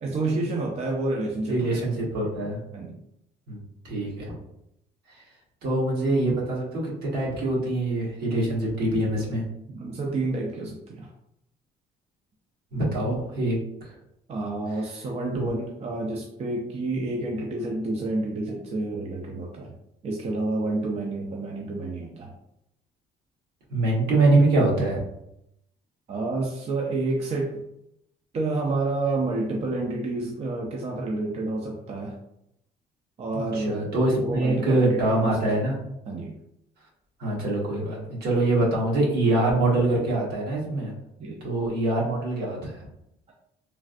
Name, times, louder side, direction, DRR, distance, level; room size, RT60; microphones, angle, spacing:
voice 1, 0.0-1.8 2.7-2.9 9.7-11.1 14.3-19.7 20.0-22.3 26.1-27.6 28.3-32.2 33.2-35.6 36.1-36.4 41.2-41.4, right 2 dB, 40° right, -1 dB, 0.5 m, -29 dB
voice 2, 1.5-2.6 3.5-4.3 5.6-9.4 12.7-13.9 15.4-15.5 23.7-25.0 33.3-35.8 37.2-40.9 41.4-42.9, right 2 dB, 70° right, -4 dB, 1.3 m, -24 dB
3.2 x 2.5 x 2.4 m, 0.80 s
cardioid pair, 110°, 17 cm